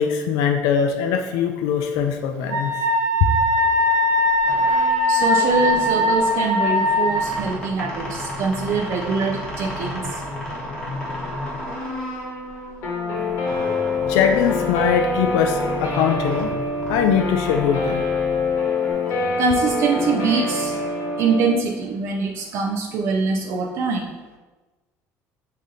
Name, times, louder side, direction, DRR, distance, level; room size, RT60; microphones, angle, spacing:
voice 1, 0.0-2.7 14.1-16.5 16.9-18.0, left 7 dB, 90° left, 5 dB, 0.4 m, -21 dB
Wind instrument woodwind instrument, 2.5-7.4, left 1 dB, 75° right, 0.9 m, -20 dB
sound 1, 4.3-18.9, left 1 dB, 15° left, 1.0 m, -33 dB
voice 2, 5.1-10.0 19.4-20.8 21.2-24.0, right 4 dB, 50° right, 1 dB, 0.4 m, -23 dB
Guitar, 12.8-21.5, left 3 dB, 55° left, 1.0 m, -25 dB
5.1 x 2.8 x 3.7 m, 1.2 s
cardioid pair, 165°, 6 cm